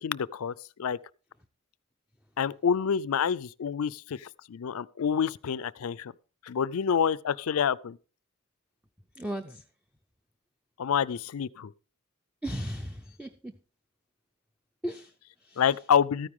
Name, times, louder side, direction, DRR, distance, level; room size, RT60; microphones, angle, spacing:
voice 1, 0.0-0.5 0.8-1.0 2.4-6.1 6.5-8.0 10.8-11.7 15.6-16.3, left 7 dB, 75° left, 0.4 m, -27 dB
voice 2, 9.1-9.6 12.4-13.5 14.8-15.8, equal, 5° right, 0.5 m, -37 dB
13.5 x 9.8 x 3.7 m
head